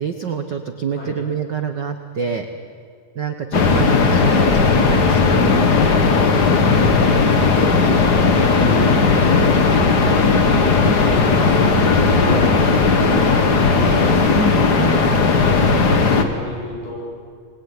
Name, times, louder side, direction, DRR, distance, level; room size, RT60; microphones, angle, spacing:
voice 1, 0.0-2.5 3.1-5.9 10.8-11.0 14.3-15.2 15.7-16.0, right 6 dB, 85° right, 7 dB, 0.9 m, -27 dB
sound 1, 3.5-16.2, left 4 dB, 40° left, 1.6 m, -16 dB
voice 2, 6.7-14.4 15.1-17.0, equal, 70° left, -3 dB, 9.3 m, -31 dB
27.0 x 21.0 x 9.6 m, 2.1 s
omnidirectional pair, 4.0 m